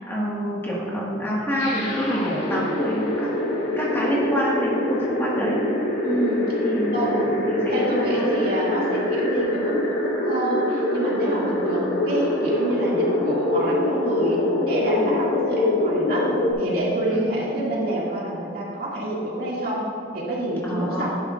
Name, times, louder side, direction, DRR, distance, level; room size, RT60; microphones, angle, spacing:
voice 1, 0.1-3.3 3.7-5.6 6.6-8.4 17.1-17.3 20.6-21.1, equal, 10° left, -6 dB, 1.7 m, -27 dB
sound 1, 1.6-16.5, left 1 dB, 70° left, 2.6 m, -24 dB
voice 2, 6.0-6.6 6.9-7.1 7.7-16.3 16.6-19.8 20.1-21.1, right 1 dB, 55° right, -6 dB, 2.4 m, -27 dB
12.5 x 10.5 x 2.5 m, 2.4 s
head